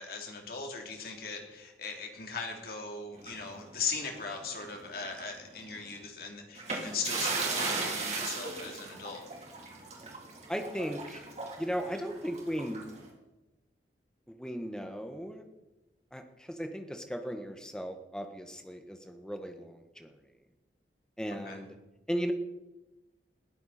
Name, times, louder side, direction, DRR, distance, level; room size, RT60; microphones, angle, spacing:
voice 1, 0.0-9.3 21.4-21.6, left 4 dB, 55° left, 1 dB, 3.3 m, -38 dB
sound 1, 3.2-4.8 5.1-5.3 6.6-13.1, right 4 dB, 40° right, 3.5 m, -37 dB
voice 2, 10.5-11.2 11.6-12.9 14.3-15.4 16.1-20.1 21.2-21.7 22.1-22.3, equal, 5° left, 5 dB, 1.4 m, -36 dB
20.5 x 15.0 x 4.4 m, 1.0 s
head